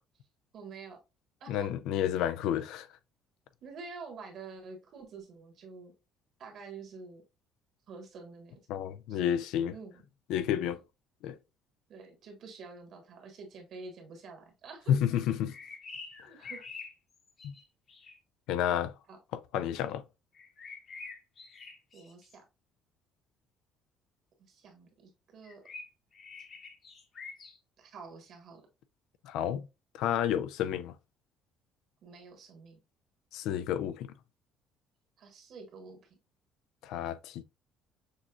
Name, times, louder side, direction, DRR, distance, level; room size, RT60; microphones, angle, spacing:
voice 1, 0.5-1.0 1.4-1.6 3.6-5.9 6.4-7.2 7.9-8.6 9.1-9.3 9.7-10.0 11.9-14.9 16.2-16.6 19.1-19.2 21.9-22.4 24.4-25.6 27.8-28.6 32.0-32.8 35.2-36.1, right 4 dB, 50° right, 1.5 m, -48 dB
voice 2, 1.5-2.9 8.7-9.7 10.3-10.8 11.2-11.4 14.9-15.5 16.2-16.3 17.4-17.5 18.5-18.9 19.3-20.0 29.2-29.7 29.9-30.9 33.3-34.1 36.8-37.4, left 10 dB, 75° left, 0.4 m, -30 dB
sound 1, 15.2-18.2 20.3-22.4 25.4-27.6, left 4 dB, 35° left, 0.9 m, -47 dB
6.3 x 2.9 x 2.4 m
cardioid pair, 155°, 0 cm